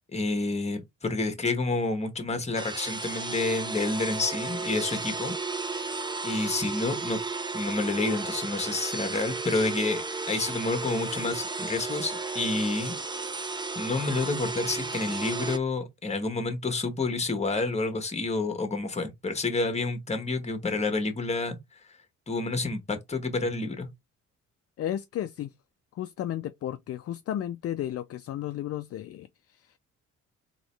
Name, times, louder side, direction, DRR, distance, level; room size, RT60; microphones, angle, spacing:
voice 1, 0.1-5.3 6.2-7.2 7.5-10.0 10.3-13.0 13.7-21.6 22.3-23.9, left 3 dB, 20° left, 1.3 m, -29 dB
sound 1, 2.6-15.6, right 3 dB, 15° right, 0.6 m, -34 dB
voice 2, 24.8-25.5 25.9-29.8, left 11 dB, 50° left, 0.4 m, -34 dB
3.8 x 3.1 x 3.2 m
cardioid pair, 90°, 30 cm